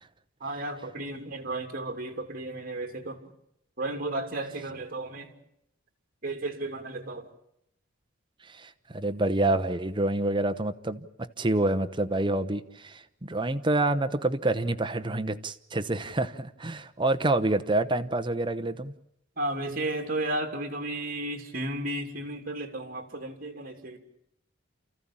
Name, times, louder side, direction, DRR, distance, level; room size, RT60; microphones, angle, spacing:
voice 1, 0.4-3.2 3.8-5.3 6.2-7.3 19.4-24.0, right 2 dB, 45° right, 5 dB, 2.8 m, -33 dB
voice 2, 8.5-18.9, right 2 dB, 25° right, 8 dB, 0.9 m, -27 dB
29.5 x 14.5 x 8.7 m, 0.77 s
head